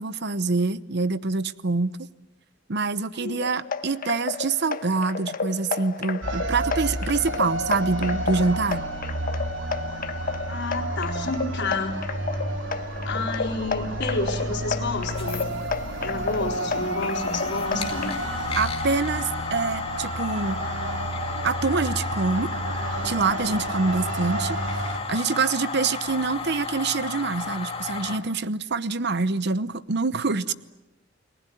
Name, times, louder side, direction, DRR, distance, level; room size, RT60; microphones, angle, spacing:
voice 1, 0.0-1.9 2.7-8.9 17.7-17.9 18.6-20.6 21.4-22.5 23.0-24.6 25.1-30.5, right 4 dB, 60° right, 15 dB, 0.9 m, -25 dB
sound 1, 3.4-18.2, left 4 dB, 50° left, 1.3 m, -32 dB
sound 2, 6.2-25.0, right 1 dB, 80° right, 2.8 m, -31 dB
voice 2, 10.5-12.0 13.0-15.5 16.0-18.2 25.8-25.9 30.5-30.6, left 3 dB, 65° left, 2 dB, 4.1 m, -30 dB
sound 3, 15.0-28.2, left 4 dB, 30° left, 2.2 m, -33 dB
30.0 x 20.0 x 9.3 m, 1.0 s
head